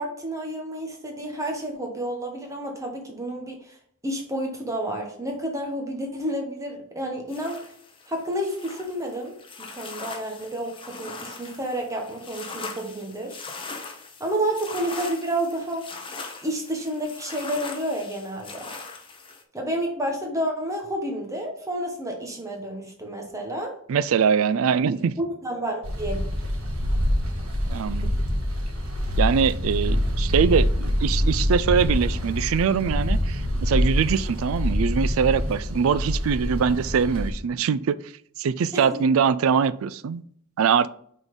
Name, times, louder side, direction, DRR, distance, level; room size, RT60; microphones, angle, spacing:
voice 1, 0.0-3.8 4.0-7.6 8.1-13.4 14.2-15.9 16.4-18.7 19.5-23.7 25.2-26.2 38.7-39.0, right 1 dB, 15° right, 1.0 m, -30 dB
sound 1, 7.3-19.4, left 4 dB, 25° left, 0.8 m, -40 dB
voice 2, 23.9-25.1 27.7-28.1 29.2-38.0 38.4-40.2 40.6-40.9, right 6 dB, 70° right, 0.4 m, -23 dB
sound 2, 25.8-37.3, equal, 90° right, 1.4 m, -25 dB
6.0 x 3.8 x 5.2 m
head